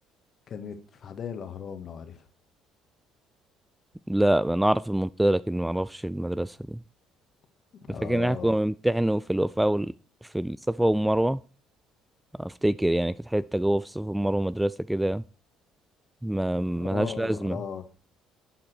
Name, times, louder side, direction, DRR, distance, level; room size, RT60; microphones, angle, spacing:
voice 1, 0.5-2.2 7.9-8.5 16.8-17.9, left 7 dB, 50° left, 1.7 m, -37 dB
voice 2, 4.1-6.8 8.0-9.9 10.3-11.4 12.4-15.2 16.2-17.6, right 1 dB, 5° right, 0.4 m, -25 dB
11.5 x 5.9 x 4.5 m
hypercardioid pair, 55°, 0 cm